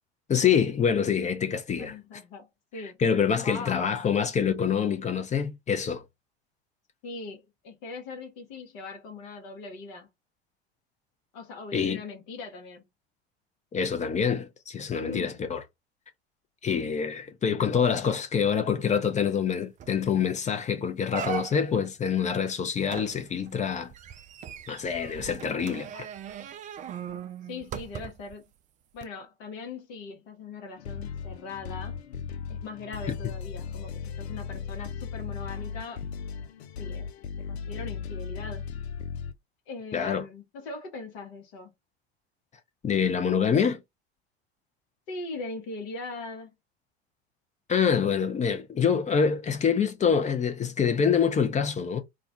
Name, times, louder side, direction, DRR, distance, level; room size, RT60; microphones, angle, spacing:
voice 1, 0.3-2.0 3.0-6.0 11.7-12.0 13.7-15.6 16.6-23.9 24.7-26.1 33.1-33.2 39.9-40.2 42.8-43.8 47.7-52.0, left 7 dB, 20° left, 0.6 m, -26 dB
voice 2, 1.8-3.0 3.4-3.9 7.0-10.1 11.3-12.8 15.0-15.4 27.5-28.4 28.9-32.0 32.5-36.0 36.8-37.1 37.5-38.7 39.7-41.7 45.1-46.5, left 3 dB, 50° left, 1.0 m, -40 dB
sound 1, 19.4-19.5 19.8-20.1 20.5-20.6 21.1-21.8 22.9-28.3 29.0-29.1, right 9 dB, 25° right, 0.4 m, -39 dB
sound 2, 30.8-39.3, left 7 dB, 80° left, 0.5 m, -37 dB
2.5 x 2.2 x 3.6 m
figure-of-eight pair, 75°, 32 cm